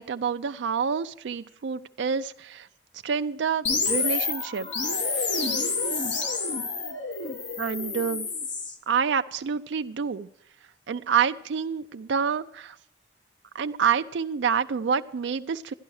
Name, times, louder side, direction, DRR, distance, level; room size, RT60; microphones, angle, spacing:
voice 1, 0.0-2.7 3.0-4.7 7.6-8.3 8.9-10.3 10.9-12.8 13.5-15.7, right 6 dB, 75° right, 9 dB, 0.4 m, -27 dB
sound 1, 3.6-8.7, left 4 dB, 85° left, 1.5 m, -28 dB
12.0 x 11.0 x 4.8 m, 0.79 s
head